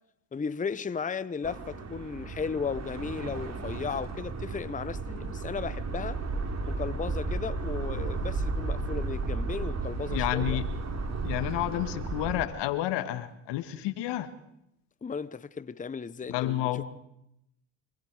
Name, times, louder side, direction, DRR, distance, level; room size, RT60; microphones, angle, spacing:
voice 1, 0.3-6.2 6.6-10.6 15.0-16.8, left 5 dB, 20° left, 0.8 m, -35 dB
sound 1, 1.4-12.4, right 3 dB, 40° right, 3.4 m, -33 dB
voice 2, 10.1-10.7 11.2-14.3 16.3-16.8, left 14 dB, 80° left, 1.8 m, -30 dB
26.0 x 22.5 x 4.9 m
supercardioid pair, 75°, 41 cm